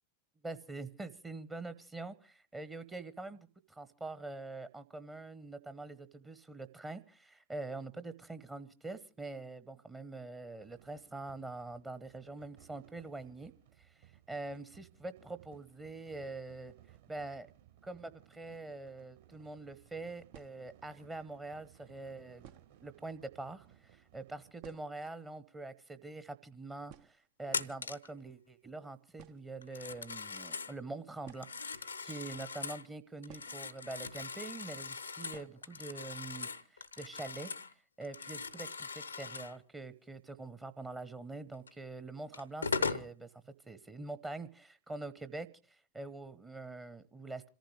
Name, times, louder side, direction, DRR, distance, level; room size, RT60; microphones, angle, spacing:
voice 1, 0.4-13.5 13.8-13.9 14.3-16.7 17.1-17.5 17.8-22.5 22.8-37.5 38.0-43.3 43.7-45.5 45.9-47.5, right 2 dB, 15° right, 12 dB, 0.9 m, -45 dB
sound 1, 10.6-24.5, right 11 dB, 60° right, 4.9 m, -62 dB
sound 2, 19.4-19.5 20.3-21.0 21.8-21.9 22.4-22.9 23.2-23.3 23.6-23.7 24.1-25.2 25.5-25.6 25.8-26.1 26.5-26.6 26.9-27.8 28.7-28.8 29.1-29.7 31.2-32.3 33.3-34.1 34.3-34.4 35.3-35.7 36.1-36.2 36.5-36.6 37.0-37.4, right 11 dB, 45° right, 0.7 m, -57 dB
Telephone, 27.5-28.1 29.6-30.8 31.3-32.9 33.2-37.7 38.0-39.6 41.7-41.8 42.3-43.1, left 4 dB, 75° left, 0.7 m, -40 dB
27.0 x 14.5 x 3.2 m, 0.36 s
figure-of-eight pair, 90°, 0 cm